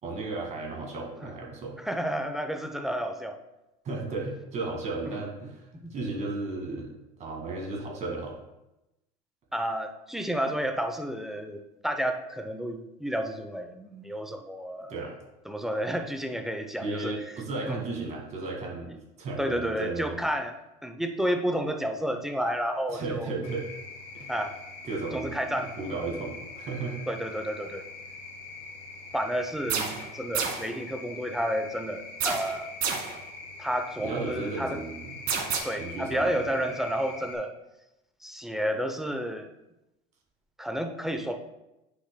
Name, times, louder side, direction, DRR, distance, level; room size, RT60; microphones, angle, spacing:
voice 1, 0.0-1.8 3.8-6.9 7.2-8.4 14.9-15.1 16.8-18.9 19.2-20.2 22.9-23.7 24.1-24.3 24.8-27.0 29.7-30.0 34.0-35.1 35.7-36.7, right 3 dB, 40° right, 0 dB, 2.1 m, -34 dB
voice 2, 1.8-3.4 5.1-5.2 5.8-5.9 9.5-14.9 15.5-17.1 17.7-17.8 18.9-19.0 19.4-23.3 24.3-24.5 25.1-26.0 27.1-27.8 29.1-29.8 30.1-32.7 33.6-34.8 35.6-37.5 38.2-39.5 40.6-41.4, equal, ahead, 6 dB, 0.6 m, -31 dB
sound 1, 23.4-37.4, left 3 dB, 80° left, 2.4 m, -43 dB
sound 2, 29.7-30.1 30.3-30.7 32.2-33.2 35.3-35.6, right 6 dB, 55° right, 1.8 m, -29 dB
9.6 x 6.0 x 2.2 m, 0.94 s
supercardioid pair, 120°, 19 cm